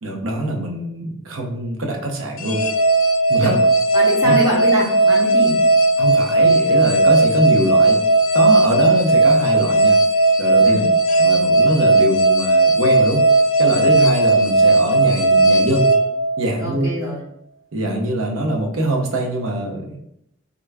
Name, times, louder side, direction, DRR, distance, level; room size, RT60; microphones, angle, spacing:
voice 1, 0.0-2.6 3.3-3.6 4.2-4.3 6.0-8.0 8.3-10.0 10.4-10.8 11.2-13.2 13.6-15.9 16.4-16.9 17.7-20.0, right 1 dB, 90° right, 1 dB, 0.7 m, -23 dB
sound 1, 2.4-16.8, right 2 dB, 90° left, 0.5 m, -16 dB
voice 2, 3.9-5.6 10.6-10.9 16.6-17.2, equal, 15° right, -5 dB, 0.8 m, -24 dB
3.6 x 2.3 x 3.3 m, 0.78 s
head